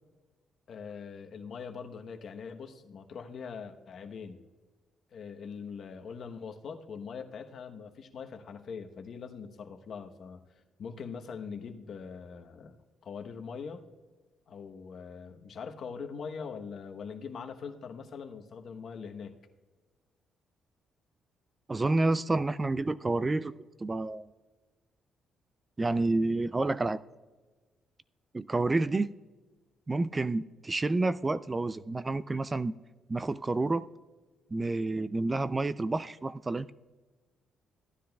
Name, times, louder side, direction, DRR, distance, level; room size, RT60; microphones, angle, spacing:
voice 1, 0.7-4.4 5.1-10.4 10.8-12.7 13.0-13.8 14.5-19.3, left 6 dB, 60° left, 1.0 m, -42 dB
voice 2, 21.7-23.5 23.8-24.3 25.8-27.0 28.3-29.1 29.9-32.7 33.1-33.9 34.5-36.7, right 2 dB, 25° right, 0.3 m, -29 dB
15.0 x 10.0 x 2.3 m
cardioid pair, 90°, 0 cm